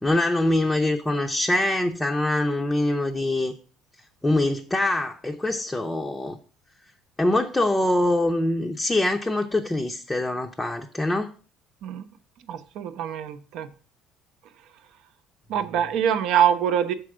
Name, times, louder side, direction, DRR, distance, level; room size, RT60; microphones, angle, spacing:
voice 1, 0.0-3.5 4.2-6.4 7.2-11.3, left 1 dB, 10° left, 2 dB, 0.6 m, -24 dB
voice 2, 12.5-13.7 15.5-16.9, right 9 dB, 65° right, 9 dB, 0.8 m, -24 dB
6.8 x 4.7 x 6.2 m, 0.38 s
cardioid pair, 140°, 0 cm